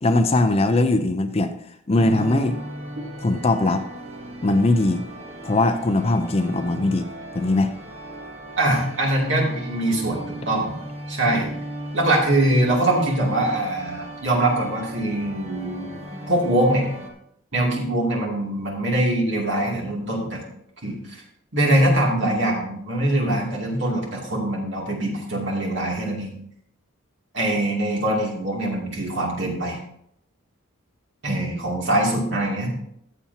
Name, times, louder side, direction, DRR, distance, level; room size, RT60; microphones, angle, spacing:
voice 1, 0.0-1.5 1.9-2.6 3.2-3.8 4.4-5.0 5.4-7.1 7.3-7.7, left 2 dB, 25° left, 7 dB, 0.5 m, -20 dB
sound 1, 1.9-17.1, right 1 dB, 30° right, 1.3 m, -37 dB
voice 2, 8.6-10.8 11.1-11.6 11.9-15.9 16.3-16.9 17.5-20.4 20.8-21.2 21.5-26.3 27.3-29.8 31.2-32.7, right 1 dB, 55° right, -2 dB, 2.6 m, -23 dB
14.5 x 7.1 x 2.8 m, 0.72 s
head